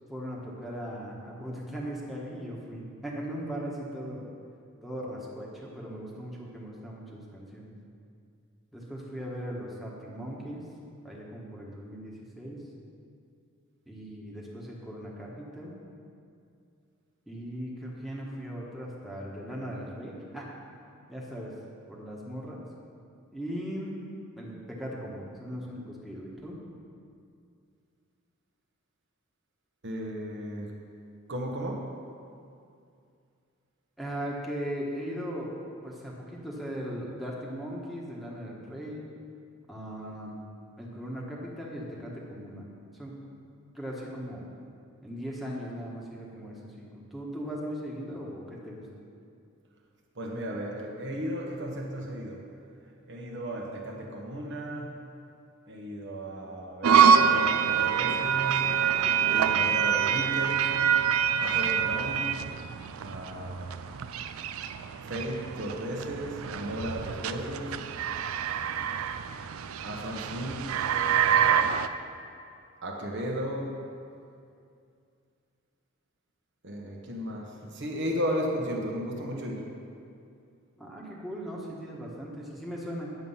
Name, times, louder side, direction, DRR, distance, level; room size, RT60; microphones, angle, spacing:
voice 1, 0.1-4.2 4.8-7.7 8.7-10.6 11.0-12.7 13.9-15.7 17.3-20.5 21.1-21.5 21.9-22.6 23.3-24.0 24.3-26.6 34.0-35.6 35.8-39.0 39.7-40.4 40.8-42.7 43.0-43.2 43.7-44.4 45.0-48.9 59.3-59.7 80.8-83.2, equal, ahead, -5 dB, 1.3 m, -38 dB
voice 2, 29.8-30.8 31.3-31.9 50.2-52.4 53.1-55.0 55.7-58.7 59.3-60.7 61.4-62.4 63.0-63.7 65.1-67.8 69.8-70.7 72.8-73.8 76.6-79.7, equal, 55° right, 0 dB, 1.2 m, -35 dB
sound 1, 56.8-71.9, right 7 dB, 70° right, 0.4 m, -26 dB
9.5 x 7.4 x 5.6 m, 2.4 s
head